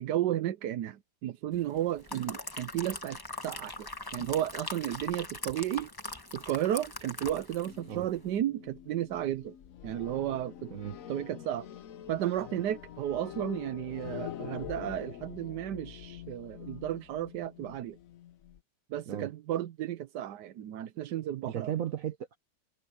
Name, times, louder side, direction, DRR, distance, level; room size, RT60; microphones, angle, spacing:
voice 1, 0.0-5.9 6.3-9.6 9.8-10.7 11.1-11.7 12.1-18.0 18.9-21.7, right 12 dB, 90° right, 1.4 m, -33 dB
sound 1, 1.8-7.8 8.1-8.3, left 2 dB, 15° left, 1.2 m, -41 dB
sound 2, 7.6-18.6, left 11 dB, 60° left, 1.1 m, -45 dB
voice 2, 21.4-22.4, right 10 dB, 60° right, 1.1 m, -35 dB
omnidirectional pair, 1.8 m